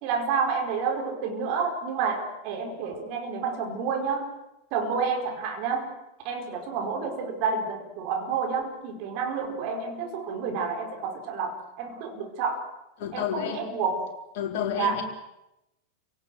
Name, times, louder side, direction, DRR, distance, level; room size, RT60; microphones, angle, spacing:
voice 1, 0.0-4.3 4.7-5.9 6.2-12.7 13.1-14.1 14.8-15.0, right 5 dB, 45° right, 4 dB, 4.7 m, -29 dB
voice 2, 13.0-13.7 14.4-15.0, left 9 dB, 50° left, 2 dB, 4.4 m, -30 dB
29.5 x 18.0 x 7.8 m, 0.91 s
figure-of-eight pair, 90°, 0 cm